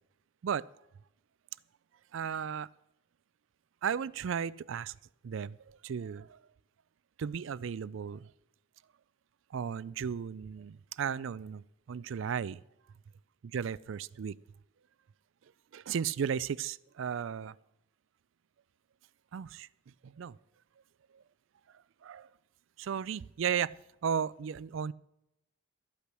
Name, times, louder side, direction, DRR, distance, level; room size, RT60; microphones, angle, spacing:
voice 1, 2.1-2.7 3.8-4.9 5.2-6.4 7.2-8.3 9.5-12.6 13.5-14.4 15.7-17.5 19.3-19.7 20.0-20.4 21.1-21.2 22.0-22.3 22.8-23.8 24.0-24.9, right 7 dB, 70° right, 0.4 m, -35 dB
13.5 x 8.4 x 6.1 m
head